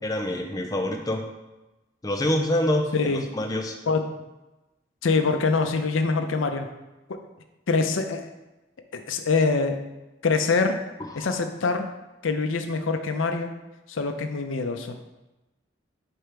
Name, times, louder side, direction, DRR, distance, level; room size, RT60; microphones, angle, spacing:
voice 1, 0.0-1.3 2.0-3.8 11.0-11.3, left 1 dB, 20° left, 2 dB, 0.5 m, -26 dB
voice 2, 5.0-6.7 7.1-7.2 7.7-8.3 8.9-9.8 10.2-10.8 11.2-11.9 12.2-13.5 13.9-15.1, left 4 dB, 85° left, 7 dB, 0.5 m, -24 dB
4.5 x 4.4 x 5.0 m, 1.0 s
head